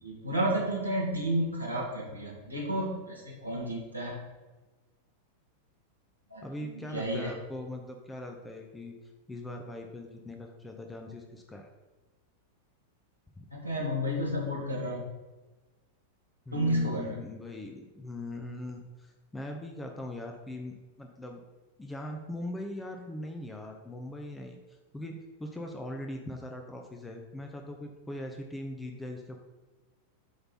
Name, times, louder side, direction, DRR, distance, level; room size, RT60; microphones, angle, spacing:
voice 1, 0.0-4.2 6.3-6.4 6.9-7.3 13.5-15.0 16.5-17.2, equal, 90° right, -4 dB, 1.5 m, -31 dB
voice 2, 6.4-8.9 9.3-11.7 13.4-13.5 16.5-21.4 21.8-29.4, left 1 dB, 10° left, 2 dB, 0.7 m, -41 dB
8.0 x 3.4 x 5.6 m, 1.2 s
figure-of-eight pair, 90°, 0 cm